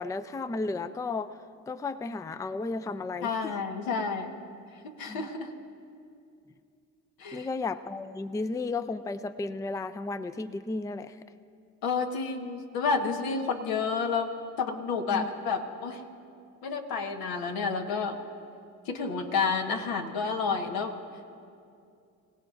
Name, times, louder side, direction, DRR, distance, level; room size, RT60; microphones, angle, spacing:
voice 1, 0.0-1.4 1.7-3.5 5.1-5.3 7.3-11.2 15.1-15.3, left 3 dB, 10° left, 12 dB, 0.4 m, -33 dB
voice 2, 3.2-4.3 4.8-5.5 7.2-7.5 11.8-14.3 14.6-16.0 16.6-18.2 18.8-20.9, left 5 dB, 80° left, 4 dB, 1.4 m, -30 dB
24.5 x 17.0 x 2.6 m, 2.5 s
supercardioid pair, 70°, 36 cm